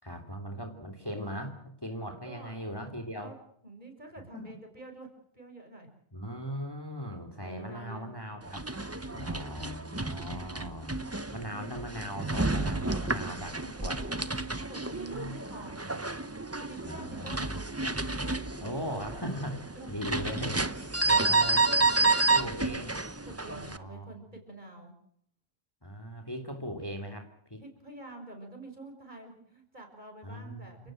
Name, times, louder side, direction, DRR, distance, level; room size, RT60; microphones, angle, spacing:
voice 1, 0.0-3.3 4.3-4.5 6.1-8.6 9.1-11.0 11.3-14.0 15.1-15.3 16.8-17.3 18.6-20.5 21.1-21.6 22.3-22.9 23.7-24.1 25.8-27.6 30.2-30.9, equal, 20° left, 6 dB, 3.1 m, -39 dB
voice 2, 2.1-2.6 3.2-3.4 3.6-5.1 5.3-5.9 7.4-9.4 13.6-13.9 14.6-16.1 16.6-17.7 19.7-20.7 21.2-22.2 22.5-23.0 23.2-24.9 27.6-30.9, right 2 dB, 40° right, 3 dB, 6.4 m, -48 dB
sound 1, 8.4-23.8, right 3 dB, 15° right, 0.9 m, -30 dB
29.5 x 17.0 x 7.9 m, 0.69 s
omnidirectional pair, 1.3 m